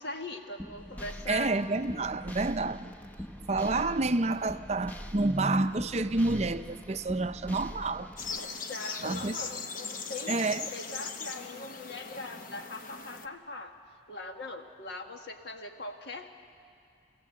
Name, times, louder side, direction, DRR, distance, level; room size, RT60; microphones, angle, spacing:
voice 1, 0.0-1.6 8.3-10.4 10.7-13.8 14.1-16.3, left 3 dB, 65° left, 4 dB, 1.6 m, -41 dB
sound 1, 0.6-8.4, equal, 10° left, 0.8 m, -43 dB
voice 2, 1.3-2.9 3.5-8.1 9.0-9.4 10.3-10.7, right 2 dB, 35° right, 11 dB, 0.5 m, -29 dB
sound 2, 8.2-13.3, left 5 dB, 45° left, 0.9 m, -39 dB
30.0 x 16.5 x 7.6 m, 2.3 s
head